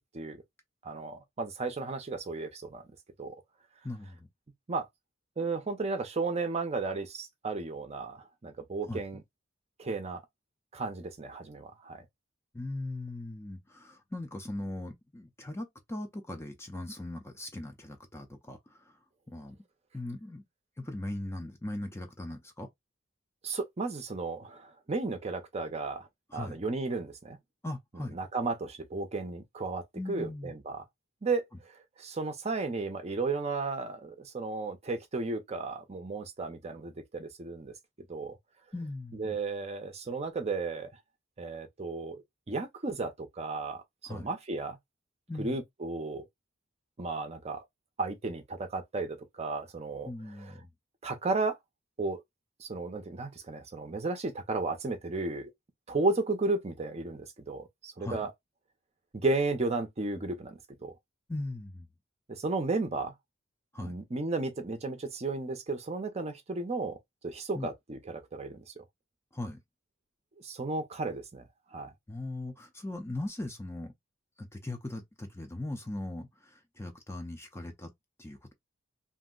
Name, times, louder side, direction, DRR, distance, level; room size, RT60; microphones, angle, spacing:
voice 1, 0.8-2.8 3.2-3.4 4.7-4.9 5.4-9.2 9.8-10.2 10.7-12.0 23.4-27.4 28.1-29.8 30.1-30.8 31.2-37.7 38.1-38.4 39.1-40.9 41.4-42.2 42.5-43.8 44.1-44.8 45.4-46.3 47.0-47.6 48.0-50.1 50.4-50.6 51.0-51.6 52.0-52.2 52.6-55.5 55.9-58.3 59.1-60.9 62.3-63.1 63.8-67.0 67.2-68.8 70.4-71.4 71.7-71.9, right 3 dB, 30° right, 0.6 m, -34 dB
voice 2, 3.8-4.3 8.9-9.0 12.5-19.0 19.3-19.6 19.9-20.4 20.8-22.7 26.3-26.6 27.6-28.1 29.9-30.5 38.7-39.4 44.1-44.3 45.3-45.6 50.0-50.7 58.0-58.3 61.3-61.9 63.7-63.9 67.5-67.7 69.3-69.6 72.1-73.9 74.4-77.9 78.2-78.5, left 2 dB, 15° left, 0.5 m, -39 dB
2.6 x 2.1 x 3.7 m
head